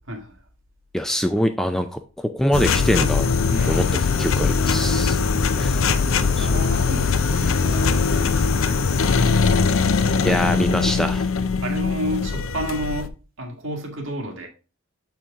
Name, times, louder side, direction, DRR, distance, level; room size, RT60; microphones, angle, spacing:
voice 1, 0.1-0.4 3.5-4.1 5.5-9.1 11.6-14.5, right 1 dB, 70° right, 1.7 m, -32 dB
voice 2, 0.9-3.3 3.7-3.8 4.2-5.2 5.6-5.8 6.4-6.5 10.2-11.3, equal, ahead, 0.4 m, -23 dB
sound 1, 2.5-13.1, left 5 dB, 80° left, 0.6 m, -21 dB
6.8 x 4.5 x 3.6 m
head